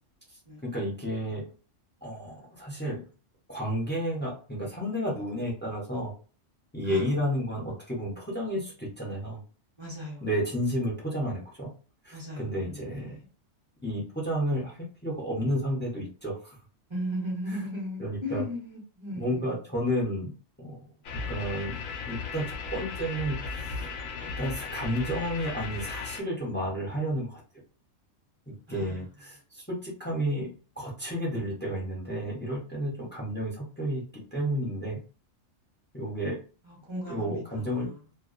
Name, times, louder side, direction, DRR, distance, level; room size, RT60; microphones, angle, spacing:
voice 1, 0.6-1.4 2.0-3.0 3.5-6.1 6.7-9.4 10.2-11.7 12.0-13.2 13.8-14.8 15.0-16.6 18.0-18.4 19.2-20.3 20.6-20.9 21.3-21.8 22.1-23.4 24.2-27.4 28.5-35.0 35.9-36.4 37.1-37.9, equal, 10° left, -3 dB, 0.5 m, -31 dB
voice 2, 9.8-10.3 12.1-13.3 16.9-19.6 28.7-29.0 36.6-37.9, equal, 30° right, -3 dB, 0.6 m, -37 dB
sound 1, 21.0-26.2, left 5 dB, 60° left, 0.7 m, -36 dB
2.3 x 2.1 x 2.5 m, 0.37 s
omnidirectional pair, 1.3 m